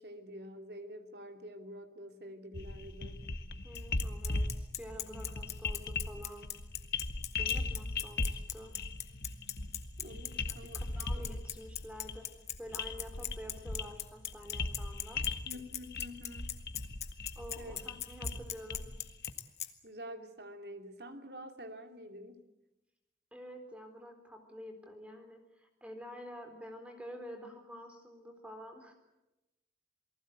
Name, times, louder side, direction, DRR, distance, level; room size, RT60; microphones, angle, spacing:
voice 1, 0.0-3.2 10.0-10.9 11.1-11.2 15.5-16.5 17.6-17.9 18.3-18.4 19.8-22.4, equal, 70° right, 6 dB, 2.8 m, -47 dB
sound 1, 2.5-19.3, left 3 dB, 60° left, 1.2 m, -39 dB
voice 2, 3.6-6.5 7.4-8.7 10.3-12.3 12.6-15.2 17.4-18.9 23.3-28.9, equal, 5° right, 5 dB, 3.9 m, -48 dB
Bicycle, 3.8-19.7, left 11 dB, 40° left, 1.5 m, -39 dB
28.5 x 19.5 x 8.1 m, 0.96 s
head